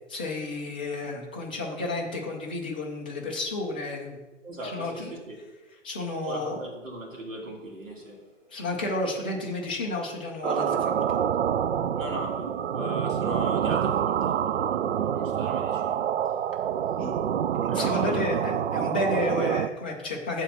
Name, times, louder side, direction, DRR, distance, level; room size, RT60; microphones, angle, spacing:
voice 1, 0.1-4.2 4.6-5.1 5.8-6.6 8.5-10.9 17.0-17.2 17.5-20.4, left 2 dB, 10° left, -3 dB, 0.3 m, -31 dB
voice 2, 4.4-5.4 6.2-8.2 11.9-16.1 17.7-18.3, right 1 dB, 80° right, -2 dB, 2.8 m, -37 dB
sound 1, 10.4-19.7, right 9 dB, 60° right, 0.5 m, -27 dB
7.4 x 4.4 x 6.0 m, 1.2 s
figure-of-eight pair, 120°, 38 cm